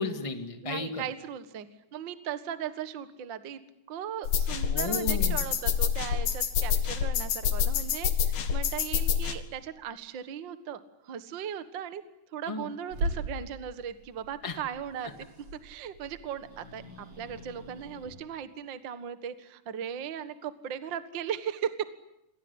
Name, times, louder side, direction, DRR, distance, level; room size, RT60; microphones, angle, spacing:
voice 1, 0.0-1.0 4.7-5.4 12.5-12.7 14.4-14.6, left 3 dB, 20° left, 6 dB, 0.9 m, -33 dB
voice 2, 0.6-1.7 1.9-3.6 3.9-12.0 12.3-15.1 15.5-21.9, right 8 dB, 70° right, 11 dB, 1.1 m, -37 dB
sound 1, 4.3-9.3, left 7 dB, 65° left, 3.7 m, -27 dB
Growling / Hiss, 12.9-18.1, right 1 dB, 40° right, 6.5 m, -39 dB
28.0 x 21.5 x 9.9 m, 0.83 s
omnidirectional pair, 4.7 m